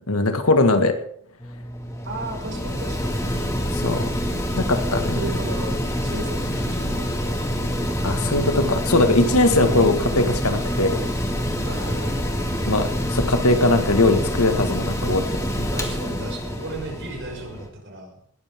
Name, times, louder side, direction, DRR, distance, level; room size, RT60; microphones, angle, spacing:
voice 1, 0.1-0.9 3.8-4.0 4.5-5.1 8.0-11.0 12.7-15.4, left 2 dB, 75° left, 7 dB, 1.9 m, -20 dB
Mechanical fan, 1.4-17.7, equal, 15° left, 2.1 m, -26 dB
voice 2, 2.0-3.2 4.8-7.5 9.2-9.4 11.6-12.2 15.6-18.2, right 2 dB, 55° right, 0 dB, 6.1 m, -35 dB
19.0 x 13.5 x 3.7 m, 0.64 s
head